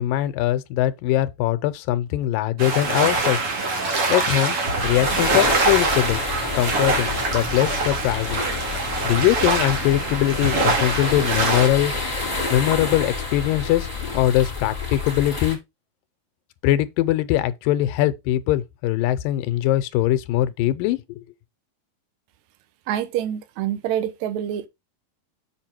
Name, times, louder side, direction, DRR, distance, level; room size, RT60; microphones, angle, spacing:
voice 1, 0.0-3.4 4.1-4.6 4.8-6.2 6.5-8.5 9.0-11.9 12.5-13.9 14.1-15.6 16.6-21.2, left 14 dB, 85° left, 2.3 m, -21 dB
sound 1, 2.6-11.7, right 3 dB, 45° right, 2.4 m, -24 dB
sound 2, 4.8-15.6, left 3 dB, 15° left, 3.4 m, -29 dB
voice 2, 22.9-24.7, right 10 dB, 70° right, 2.0 m, -26 dB
7.5 x 4.7 x 4.4 m
omnidirectional pair, 4.0 m